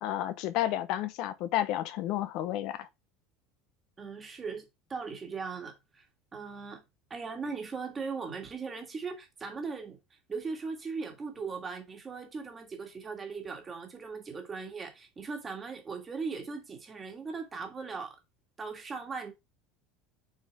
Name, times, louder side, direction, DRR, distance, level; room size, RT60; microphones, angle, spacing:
voice 1, 0.0-2.9, left 13 dB, 50° left, 0.9 m, -31 dB
voice 2, 4.0-6.0 6.3-6.8 7.1-10.0 10.3-18.2 18.6-19.3, right 4 dB, 15° right, 1.8 m, -39 dB
7.1 x 4.4 x 3.4 m
cardioid pair, 160°, 0 cm